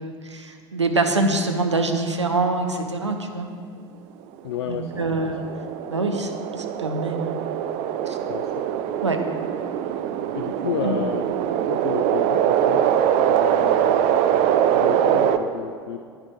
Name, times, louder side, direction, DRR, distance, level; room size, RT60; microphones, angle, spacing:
voice 1, 0.0-3.5 4.7-5.4 5.9-6.3 6.6-7.4 8.1-8.2 9.0-9.2 10.8-11.0, right 3 dB, 85° right, 4 dB, 0.7 m, -25 dB
voice 2, 4.4-5.5 8.3-8.7 10.3-11.3 11.6-16.0, left 8 dB, 65° left, 9 dB, 0.4 m, -33 dB
sound 1, 4.6-15.4, right 10 dB, 45° right, 0.5 m, -23 dB
9.9 x 9.7 x 3.1 m, 2.1 s
figure-of-eight pair, 75°, 15 cm